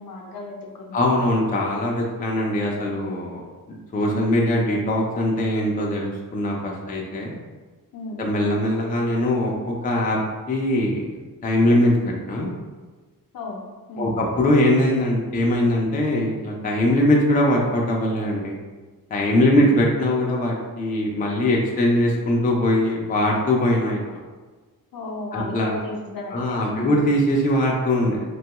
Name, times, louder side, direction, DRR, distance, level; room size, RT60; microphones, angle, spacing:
voice 1, 0.0-1.2 7.9-8.3 13.3-13.6 13.9-14.2 19.4-19.7 24.9-27.0, left 2 dB, 70° left, -1 dB, 0.6 m, -34 dB
voice 2, 0.9-3.4 3.9-7.3 8.2-10.2 10.5-11.1 11.4-12.5 14.0-18.6 19.1-24.2 25.3-25.7 26.3-28.2, left 1 dB, 25° left, -1 dB, 0.4 m, -21 dB
3.0 x 2.2 x 2.8 m, 1.3 s
wide cardioid pair, 150°, 36 cm